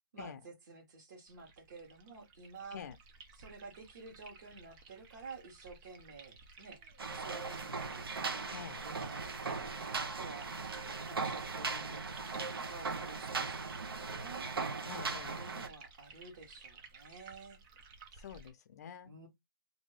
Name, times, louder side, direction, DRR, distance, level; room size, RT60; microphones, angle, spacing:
voice 1, 0.1-2.8 3.3-6.8 7.1-8.0 8.8-9.4 9.8-14.5 15.3-17.6 19.0-19.3, right 4 dB, 50° right, 1.3 m, -51 dB
sound 1, 1.3-18.5, right 4 dB, 15° right, 0.4 m, -57 dB
sound 2, 7.0-15.7, right 4 dB, 90° right, 0.7 m, -38 dB
voice 2, 8.5-8.8 14.9-15.4 18.2-19.1, left 8 dB, 45° left, 0.6 m, -47 dB
2.7 x 2.6 x 3.2 m
hypercardioid pair, 160°, 12 cm